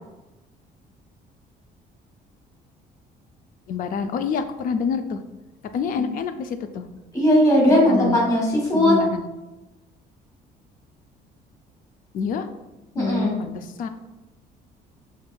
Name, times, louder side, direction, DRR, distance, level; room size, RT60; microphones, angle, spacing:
voice 1, 3.7-5.2 5.7-6.9 7.7-8.2 8.7-9.2 12.1-12.5 13.0-13.9, left 5 dB, 55° left, 9 dB, 0.4 m, -27 dB
voice 2, 7.1-8.9 12.9-13.3, left 1 dB, 20° left, -4 dB, 1.5 m, -18 dB
5.3 x 3.6 x 2.3 m, 1.0 s
cardioid pair, 110°, 17 cm